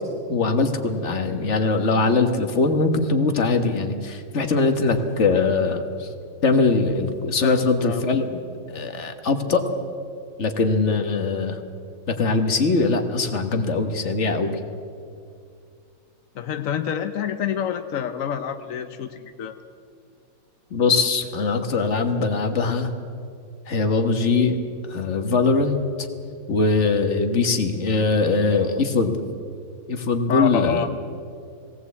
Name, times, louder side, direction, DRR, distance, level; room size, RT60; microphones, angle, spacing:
voice 1, 0.3-6.1 6.4-8.5 8.7-9.7 10.4-11.6 12.1-14.6 20.7-22.9 23.7-24.6 24.9-25.8 26.5-29.2 29.9-30.8, left 3 dB, 35° left, 6 dB, 1.5 m, -21 dB
voice 2, 7.4-8.0 16.3-19.5 30.3-30.9, left 8 dB, 65° left, 8 dB, 0.8 m, -27 dB
21.0 x 17.5 x 8.4 m, 2.4 s
omnidirectional pair, 2.4 m